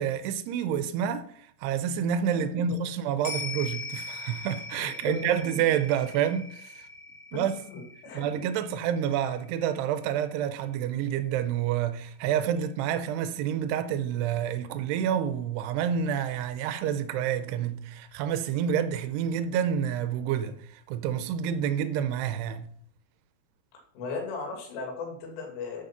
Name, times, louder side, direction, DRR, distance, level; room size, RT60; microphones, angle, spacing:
voice 1, 0.0-6.9 7.3-7.5 8.1-22.7, right 9 dB, 80° right, 2.4 m, -28 dB
voice 2, 2.3-2.8 4.8-5.4 7.3-8.4 23.9-25.8, left 4 dB, 90° left, 4.7 m, -37 dB
sound 1, 3.2-11.8 12.2-12.3, left 3 dB, 50° left, 2.4 m, -41 dB
10.5 x 7.4 x 5.8 m
omnidirectional pair, 5.5 m